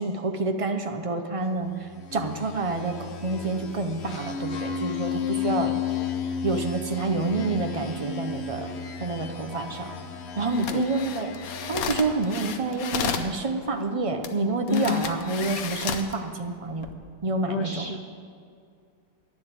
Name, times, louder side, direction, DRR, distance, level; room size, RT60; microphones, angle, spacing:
voice 1, 0.0-5.8 6.4-8.7 9.0-9.9 10.4-11.3 11.7-16.9 17.2-17.9, right 3 dB, 45° right, 5 dB, 0.4 m, -28 dB
sound 1, 1.9-12.8, left 7 dB, 50° left, 1.0 m, -33 dB
voice 2, 10.4-10.8 14.7-15.1 17.5-18.0, left 7 dB, 80° left, 8 dB, 0.5 m, -29 dB
sound 2, 10.5-13.3 14.2-14.3 14.7-16.1 16.7-16.9, left 6 dB, 65° left, 1.2 m, -32 dB
11.5 x 9.7 x 7.6 m, 2.3 s
omnidirectional pair, 1.8 m